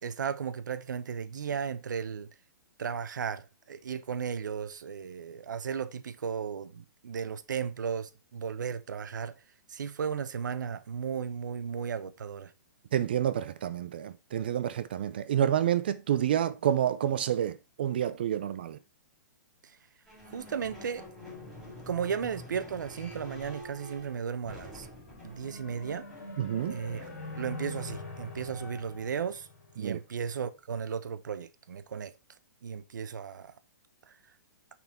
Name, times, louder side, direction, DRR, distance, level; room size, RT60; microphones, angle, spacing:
voice 1, 0.0-2.3 2.8-9.4 9.7-12.5 20.2-21.1 21.9-24.9 25.2-26.1 26.7-27.0 27.3-29.5 29.8-32.1 32.6-33.5, right 7 dB, 75° right, 0.9 m, -35 dB
voice 2, 12.9-18.8 26.4-26.8 29.8-30.0, right 10 dB, 30° right, 0.4 m, -29 dB
sound 1, 20.1-29.1, left 1 dB, ahead, 2.3 m, -48 dB
sound 2, 24.7-30.3, left 2 dB, 55° left, 3.4 m, -44 dB
6.0 x 5.4 x 4.4 m
hypercardioid pair, 180°, 10 cm